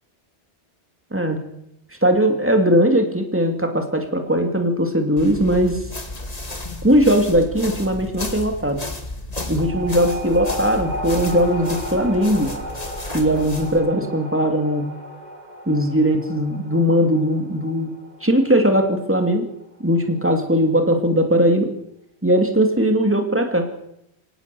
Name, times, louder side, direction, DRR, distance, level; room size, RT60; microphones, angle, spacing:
voice 1, 2.0-5.8 6.8-8.8 9.5-12.5 13.1-14.9 15.7-17.9 18.2-19.5 19.8-21.7 22.2-23.7, equal, 10° right, 4 dB, 2.5 m, -19 dB
sound 1, 5.2-13.8, left 1 dB, 35° left, 2.2 m, -33 dB
sound 2, 9.6-20.5, equal, 40° right, 2.0 m, -35 dB
23.5 x 18.0 x 6.9 m, 0.81 s
omnidirectional pair, 1.2 m